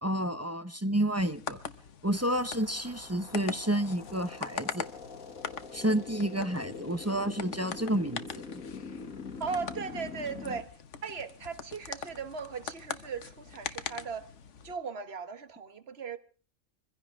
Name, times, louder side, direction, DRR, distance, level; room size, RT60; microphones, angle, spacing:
voice 1, 0.0-1.6 2.0-4.9 5.7-8.2 8.5-8.6, right 1 dB, 15° right, 0.7 m, -30 dB
sound 1, 1.1-14.7, left 7 dB, 60° left, 1.3 m, -43 dB
sound 2, 2.1-10.6, left 5 dB, 75° left, 2.2 m, -44 dB
voice 2, 9.4-14.3 14.6-16.2, right 5 dB, 50° right, 1.4 m, -38 dB
24.0 x 16.0 x 3.6 m
omnidirectional pair, 1.4 m